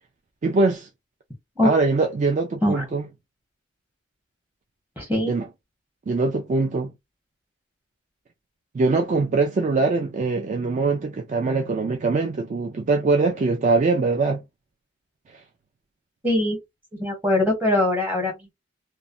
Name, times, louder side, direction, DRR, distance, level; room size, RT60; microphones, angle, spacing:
voice 1, 0.4-0.9 1.6-3.0 5.3-5.4 6.1-6.9 8.7-14.4, right 3 dB, 35° right, 0.3 m, -22 dB
voice 2, 5.0-5.3 16.2-16.6 17.0-18.5, left 1 dB, 10° right, 1.0 m, -22 dB
3.0 x 2.1 x 2.5 m
head